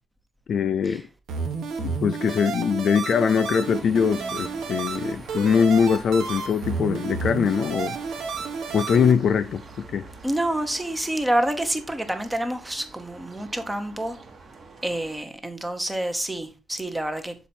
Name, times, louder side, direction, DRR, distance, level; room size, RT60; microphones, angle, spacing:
voice 1, 0.5-1.0 1.8-8.0 8.7-9.6 9.9-10.0, left 6 dB, 55° left, 0.4 m, -22 dB
sound 1, 1.3-9.1, right 5 dB, 85° right, 1.2 m, -31 dB
sound 2, 3.6-15.2, right 3 dB, 40° right, 1.1 m, -45 dB
voice 2, 10.2-14.2 14.8-17.3, right 1 dB, 10° right, 0.8 m, -28 dB
7.1 x 4.3 x 4.2 m
wide cardioid pair, 165°, 0 cm